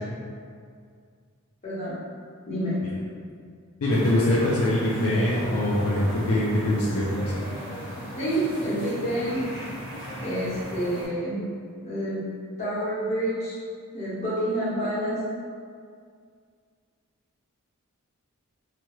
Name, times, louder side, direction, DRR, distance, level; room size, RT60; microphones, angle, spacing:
voice 1, 1.6-2.0 2.5-2.8 8.2-9.4 10.2-11.4 11.8-12.2 12.6-13.6 13.9-15.2, right 1 dB, 30° left, -11 dB, 1.1 m, -28 dB
voice 2, 3.8-7.4, left 1 dB, 70° left, -6 dB, 0.4 m, -23 dB
sound 1, 3.9-11.1, equal, 45° right, 1.3 m, -37 dB
2.9 x 2.2 x 3.0 m, 2.1 s
head